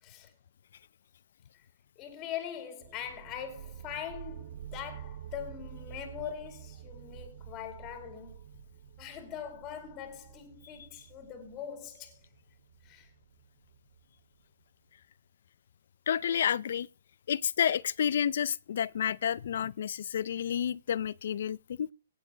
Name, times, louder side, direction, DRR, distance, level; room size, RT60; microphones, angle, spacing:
voice 1, 0.0-0.3 1.5-1.7 2.0-8.4 9.0-12.2 12.8-13.1, left 9 dB, 25° left, 2.3 m, -42 dB
sound 1, 2.8-14.2, right 10 dB, 55° right, 0.7 m, -49 dB
voice 2, 16.1-16.9 17.3-21.9, left 9 dB, 60° left, 0.5 m, -30 dB
17.0 x 7.0 x 5.1 m
hypercardioid pair, 155°, 0 cm